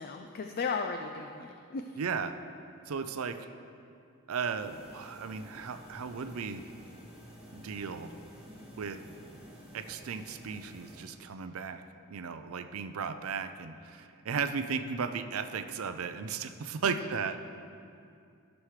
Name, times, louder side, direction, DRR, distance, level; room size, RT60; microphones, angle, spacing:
voice 1, 0.0-1.8 16.8-17.1, left 4 dB, 45° left, 5 dB, 0.4 m, -36 dB
voice 2, 2.0-2.3 2.9-3.4 4.3-6.6 7.5-8.1 8.8-9.0 9.7-11.8 12.1-17.4, right 6 dB, 70° right, 9 dB, 0.5 m, -35 dB
sound 1, 4.6-11.0, equal, 5° right, 1.7 m, -51 dB
14.5 x 6.2 x 3.2 m, 2.5 s
head